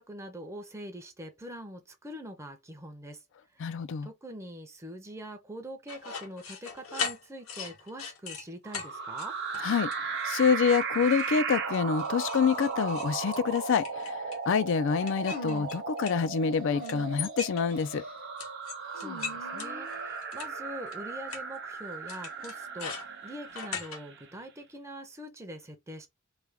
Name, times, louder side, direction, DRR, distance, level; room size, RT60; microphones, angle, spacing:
voice 1, 0.0-3.2 3.5-3.7 4.0-9.4 19.0-26.1, equal, 15° right, 0.6 m, -43 dB
voice 2, 3.6-4.1 9.6-9.9 10.2-14.2 14.5-18.0, left 6 dB, 60° left, 0.4 m, -27 dB
sound 1, 5.9-8.4 8.7-8.9 9.2-9.6 9.9-10.5 10.8-11.3 11.7-14.5 15.0-16.6 16.8-17.9 18.4-20.5 20.9-21.0 21.3-21.4 22.1-24.0, left 5 dB, 80° left, 1.0 m, -39 dB
sound 2, 8.6-24.3, right 5 dB, 55° right, 0.7 m, -36 dB
sound 3, 15.2-15.8 16.6-17.3 17.7-18.1 18.9-20.1, left 1 dB, 45° left, 0.8 m, -43 dB
3.2 x 2.3 x 3.4 m
head